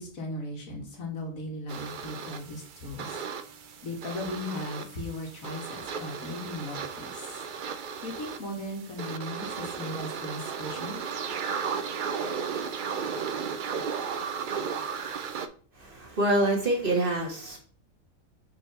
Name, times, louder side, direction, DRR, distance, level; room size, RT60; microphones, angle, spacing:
voice 1, 0.0-3.2 3.8-7.4 8.0-11.0, left 1 dB, 70° left, 1 dB, 1.9 m, -37 dB
sound 1, 1.7-15.5, right 6 dB, 65° right, 0.5 m, -35 dB
voice 2, 15.7-17.6, right 1 dB, 40° right, 0 dB, 1.5 m, -26 dB
4.5 x 4.3 x 5.2 m, 0.42 s
omnidirectional pair, 1.5 m